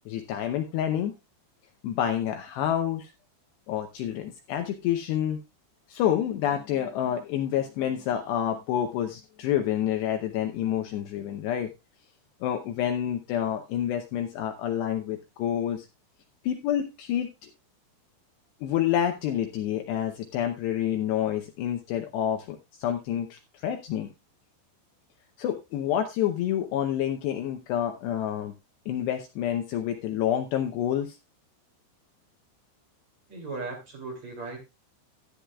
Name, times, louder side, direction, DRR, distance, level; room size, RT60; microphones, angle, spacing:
voice 1, 0.1-1.1 1.8-3.1 3.7-5.4 5.9-11.7 12.4-15.9 16.4-17.5 18.6-24.1 25.4-28.5 28.9-31.2, left 10 dB, 75° left, 5 dB, 2.6 m, -28 dB
voice 2, 33.3-34.6, right 3 dB, 40° right, 2 dB, 3.5 m, -37 dB
13.5 x 11.0 x 2.3 m, 0.24 s
omnidirectional pair, 5.6 m